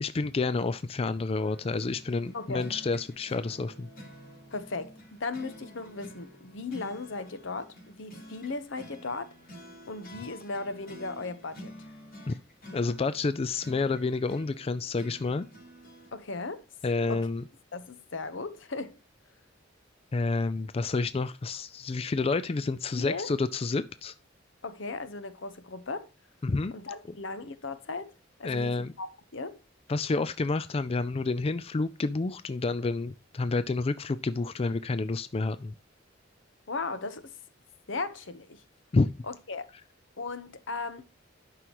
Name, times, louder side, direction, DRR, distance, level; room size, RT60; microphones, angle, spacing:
voice 1, 0.0-3.9 12.3-12.4 12.7-15.5 16.8-17.4 20.1-24.1 26.4-26.7 28.4-28.9 29.9-35.7 38.9-39.1, left 3 dB, 30° left, 0.4 m, -29 dB
sound 1, 1.4-16.1, equal, 50° left, 3.8 m, -49 dB
voice 2, 2.3-2.7 4.5-9.3 9.9-11.9 16.1-16.6 17.1-17.3 17.7-19.0 22.6-23.3 24.6-26.1 26.7-28.1 28.4-29.1 29.3-29.6 36.7-37.3 37.9-38.6 39.2-39.6 40.2-41.0, left 3 dB, 75° left, 1.0 m, -37 dB
11.5 x 6.1 x 3.0 m
head